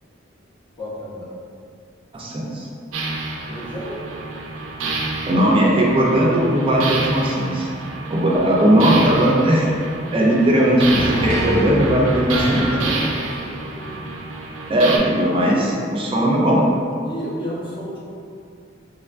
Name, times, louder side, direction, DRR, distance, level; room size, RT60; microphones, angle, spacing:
voice 1, 0.8-1.3 3.5-4.0 8.3-9.0 10.7-11.0 12.7-14.1 16.1-16.8 17.0-18.0, equal, 25° left, -8 dB, 0.6 m, -33 dB
voice 2, 2.1-2.7 5.3-7.7 8.1-9.7 10.1-12.6 14.7-16.6, right 1 dB, 25° right, -3 dB, 0.4 m, -18 dB
sound 1, 2.9-15.0, right 2 dB, 85° right, 0.4 m, -27 dB
3.6 x 2.2 x 2.4 m, 2.4 s
head